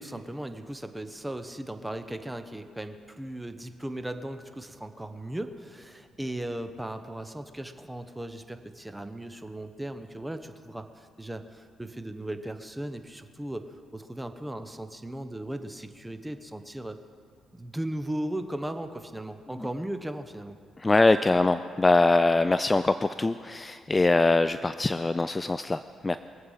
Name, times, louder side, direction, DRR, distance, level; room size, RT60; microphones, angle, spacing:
voice 1, 0.0-13.6 13.9-17.0 17.5-20.5, right 1 dB, 10° right, 8 dB, 1.0 m, -37 dB
voice 2, 20.8-26.2, left 2 dB, 20° left, 12 dB, 0.4 m, -23 dB
23.5 x 8.0 x 5.6 m, 2.1 s
cardioid pair, 90°, 0 cm